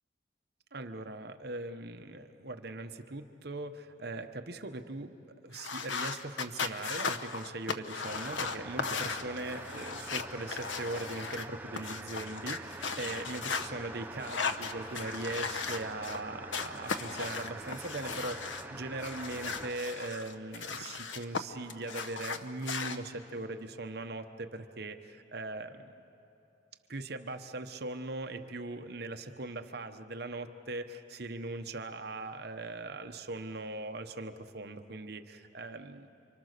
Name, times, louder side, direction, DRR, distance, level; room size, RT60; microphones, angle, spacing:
voice 1, 0.7-5.1 5.4-25.9 26.9-36.1, right 2 dB, 55° right, 6 dB, 1.0 m, -40 dB
sound 1, 5.5-13.7 14.2-16.2 16.5-18.6 19.0-21.4 21.7-23.0, left 5 dB, 75° left, 1.0 m, -37 dB
sound 2, 8.0-19.7, right 2 dB, 10° right, 0.7 m, -45 dB
29.5 x 24.5 x 6.7 m, 2.7 s
head